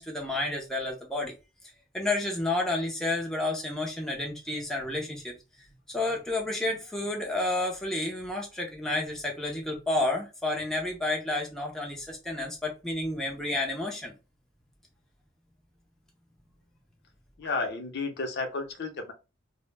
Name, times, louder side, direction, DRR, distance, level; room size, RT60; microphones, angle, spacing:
voice 1, 0.0-1.3 1.9-5.3 5.9-14.1, left 2 dB, ahead, -1 dB, 0.4 m, -30 dB
voice 2, 17.4-19.1, left 3 dB, 55° left, 5 dB, 0.5 m, -32 dB
2.0 x 2.0 x 3.1 m, 0.28 s
head